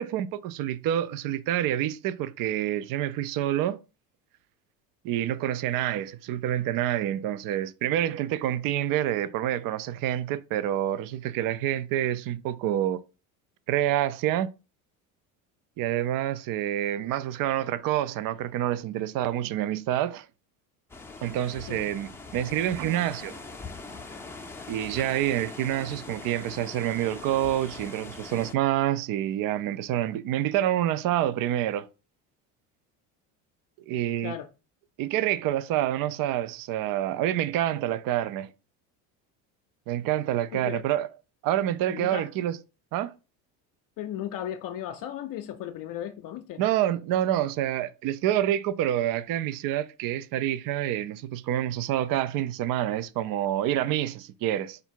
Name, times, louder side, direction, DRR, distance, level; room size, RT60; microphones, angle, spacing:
voice 1, 0.0-3.8 5.0-13.0 13.7-14.5 15.8-20.3 21.2-23.3 24.7-31.9 33.9-34.3 35.0-38.5 39.9-41.1 41.4-42.6 42.9-43.1 46.6-54.8, right 12 dB, 50° right, 0.5 m, -27 dB
sound 1, 20.9-28.5, left 3 dB, 5° left, 0.6 m, -42 dB
voice 2, 40.5-40.8 41.9-42.3 44.0-46.7, left 11 dB, 50° left, 0.6 m, -36 dB
4.9 x 2.4 x 4.5 m
supercardioid pair, 85°, 43 cm